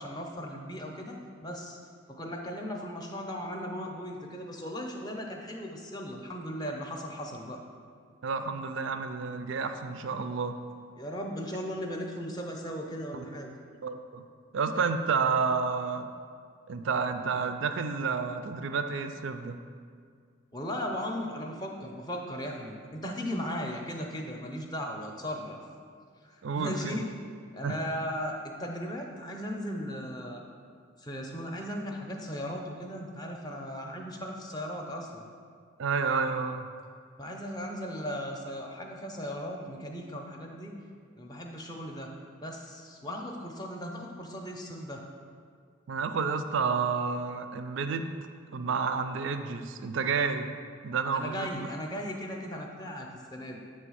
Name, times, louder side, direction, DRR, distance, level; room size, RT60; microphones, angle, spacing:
voice 1, 0.0-1.8 2.1-7.6 11.0-13.5 20.5-25.6 26.2-27.1 27.5-30.4 31.0-35.3 37.2-40.8 41.2-42.1 42.4-45.0 51.1-53.6, equal, 20° left, 1 dB, 0.6 m, -37 dB
voice 2, 8.2-10.6 13.1-13.3 13.8-14.2 14.5-16.1 16.7-19.6 26.4-27.0 27.6-27.8 35.8-36.7 45.9-48.1 48.5-50.5 50.8-51.7, right 5 dB, 60° right, 8 dB, 0.4 m, -30 dB
7.9 x 3.2 x 6.2 m, 2.1 s
head